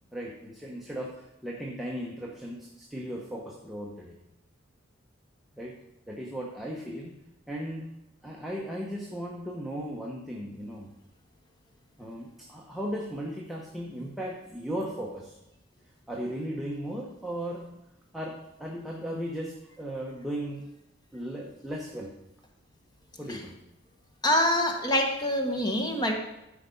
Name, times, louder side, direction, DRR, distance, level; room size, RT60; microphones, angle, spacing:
voice 1, 0.1-4.2 5.6-5.8 6.1-7.2 7.5-7.9 8.2-10.9 12.0-15.4 16.1-17.7 18.1-20.7 21.1-22.1 23.2-23.6, equal, ahead, -3 dB, 0.9 m, -36 dB
voice 2, 24.2-26.1, left 1 dB, 20° left, 2 dB, 1.2 m, -25 dB
13.0 x 5.0 x 5.3 m, 0.90 s
head